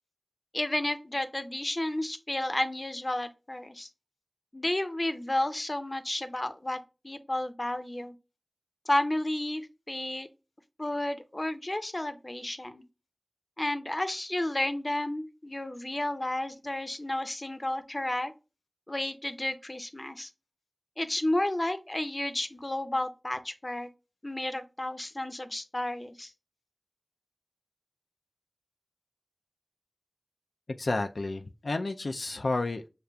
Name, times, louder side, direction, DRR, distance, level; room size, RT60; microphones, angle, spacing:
voice 1, 0.5-3.9 4.5-8.1 8.9-10.3 10.8-12.8 13.6-18.3 18.9-20.3 21.0-23.9 24.2-26.3, left 1 dB, 35° left, 0.6 m, -32 dB
voice 2, 30.8-32.9, left 2 dB, 85° left, 0.3 m, -31 dB
6.6 x 2.4 x 2.2 m
wide cardioid pair, 40°, 0 cm